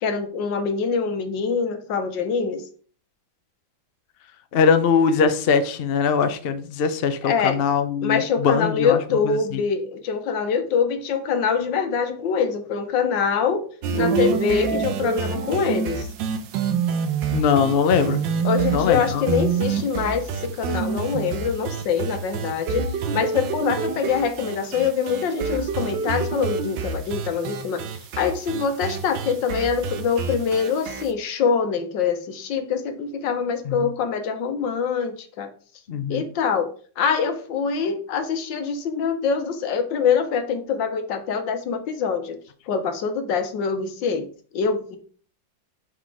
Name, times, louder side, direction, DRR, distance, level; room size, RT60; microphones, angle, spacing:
voice 1, 0.0-2.6 7.2-7.6 8.0-13.7 13.9-16.1 18.4-27.8 28.2-35.5 36.1-36.7 37.0-42.4 42.7-44.3 44.5-45.0, left 6 dB, 75° left, 8 dB, 1.6 m, -24 dB
voice 2, 4.5-9.0 9.2-9.6 17.3-18.2 18.7-19.3 33.6-33.9 35.9-36.2, left 6 dB, 90° left, 9 dB, 0.5 m, -21 dB
sound 1, 13.8-31.1, right 6 dB, 75° right, 1.5 m, -27 dB
5.8 x 4.9 x 4.8 m, 0.43 s
omnidirectional pair, 2.1 m